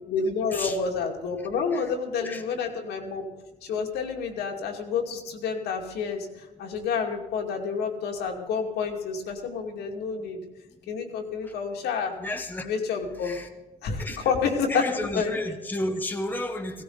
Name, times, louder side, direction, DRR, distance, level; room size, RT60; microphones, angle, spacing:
voice 1, 0.1-3.2 3.6-10.4 10.9-12.1 12.6-13.4 13.8-14.8 15.1-15.3, left 5 dB, 75° left, 1 dB, 2.4 m, -29 dB
voice 2, 12.2-12.7 13.2-13.5 14.0-14.3 14.7-16.8, left 1 dB, 10° left, 5 dB, 1.1 m, -32 dB
16.5 x 16.5 x 4.0 m, 1.1 s
cardioid pair, 110°, 17 cm